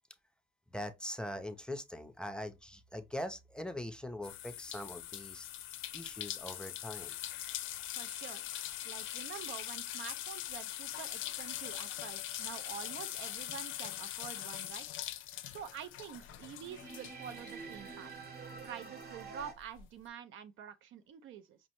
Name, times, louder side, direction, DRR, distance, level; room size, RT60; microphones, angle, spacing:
voice 1, 0.7-5.5 5.9-7.2, left 1 dB, 5° left, 0.5 m, -42 dB
sound 1, 4.2-18.3 18.6-19.8, left 13 dB, 85° left, 0.4 m, -42 dB
voice 2, 7.9-8.5 8.8-18.1 18.6-21.6, right 8 dB, 80° right, 0.5 m, -47 dB
sound 2, 16.6-19.5, right 5 dB, 50° right, 0.9 m, -47 dB
5.4 x 2.0 x 2.9 m
cardioid pair, 90°, 20 cm